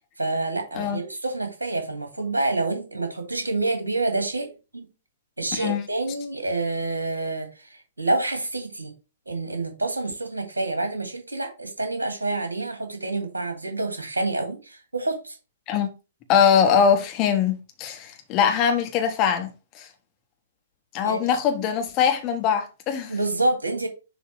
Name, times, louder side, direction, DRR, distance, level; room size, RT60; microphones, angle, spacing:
voice 1, 0.2-4.9 5.4-8.9 9.3-15.4 21.0-21.2 21.5-21.6 23.1-23.9, right 2 dB, 75° right, 2.5 m, -28 dB
voice 2, 5.5-5.8 15.7-15.9 16.3-19.5 19.7-19.9 20.9-23.1, left 7 dB, 30° left, 1.6 m, -22 dB
7.1 x 3.6 x 5.0 m
figure-of-eight pair, 110°, 0 cm